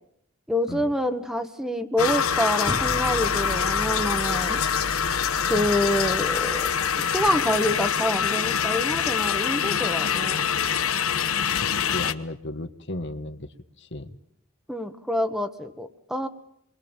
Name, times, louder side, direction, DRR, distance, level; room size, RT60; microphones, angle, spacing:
voice 1, 0.5-4.6 5.5-10.4 14.7-16.3, left 1 dB, ahead, 8 dB, 1.4 m, -27 dB
sound 1, 2.0-12.1, left 7 dB, 85° left, 1.2 m, -25 dB
sound 2, 2.7-7.3, equal, 20° left, 1.2 m, -37 dB
voice 2, 11.6-14.2, left 1 dB, 60° left, 8 dB, 1.6 m, -35 dB
29.5 x 23.0 x 7.3 m, 0.72 s
head